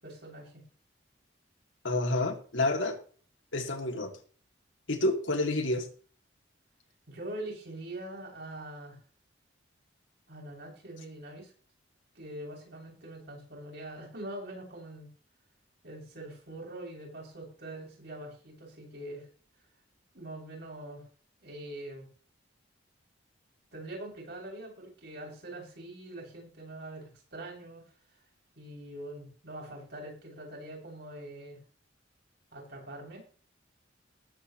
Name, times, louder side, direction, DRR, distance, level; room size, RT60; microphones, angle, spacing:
voice 1, 0.0-0.6 7.1-9.0 10.3-11.5 12.1-15.1 15.8-19.3 20.1-21.0 21.4-22.1 23.7-27.8 28.5-31.6 32.5-33.2, right 1 dB, 55° right, -2 dB, 7.8 m, -43 dB
voice 2, 1.8-3.0 3.5-4.1 4.9-5.9, left 2 dB, 80° left, 3 dB, 3.0 m, -29 dB
19.5 x 8.6 x 3.3 m, 0.42 s
head